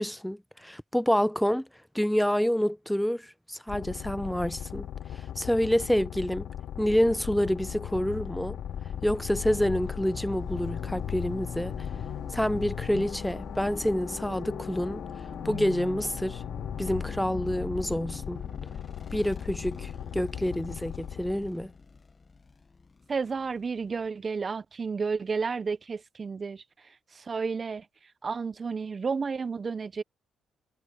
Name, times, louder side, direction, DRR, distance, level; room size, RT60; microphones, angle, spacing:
voice 1, 0.0-1.7 1.9-4.9 5.4-6.5 6.8-8.6 9.0-11.9 12.3-15.0 15.4-16.4 16.8-18.4 19.1-21.7, equal, ahead, 0.8 m, -28 dB
sound 1, 3.7-21.7, left 10 dB, 70° left, 2.1 m, -38 dB
sound 2, 7.1-24.1, left 4 dB, 30° left, 1.0 m, -42 dB
voice 2, 23.1-26.6 27.1-27.9 28.2-30.0, right 5 dB, 35° right, 0.5 m, -31 dB
cardioid pair, 90°, 0 cm